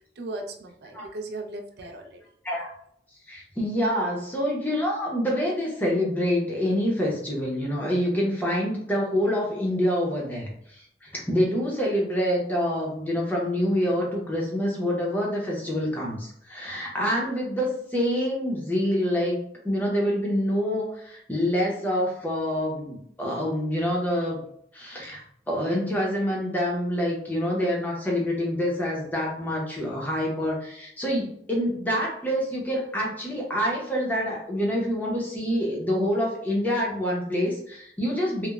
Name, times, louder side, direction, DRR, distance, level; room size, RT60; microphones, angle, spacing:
voice 1, 0.2-2.2, right 2 dB, 70° right, 3 dB, 0.4 m, -37 dB
voice 2, 3.3-19.4 19.6-24.4 24.7-25.2 25.5-38.5, equal, 10° left, -3 dB, 0.6 m, -26 dB
2.9 x 2.0 x 2.3 m, 0.68 s
head